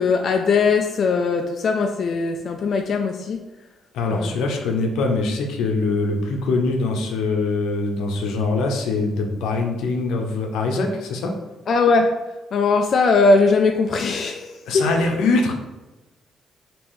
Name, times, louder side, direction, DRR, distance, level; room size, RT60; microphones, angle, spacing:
voice 1, 0.0-3.4 4.1-4.5 11.7-12.1 12.5-14.8, left 4 dB, 55° left, 3 dB, 0.4 m, -20 dB
voice 2, 3.9-11.4 14.7-15.5, left 3 dB, 85° left, 2 dB, 0.7 m, -23 dB
5.3 x 2.9 x 3.1 m, 1.1 s
cardioid pair, 90°, 0 cm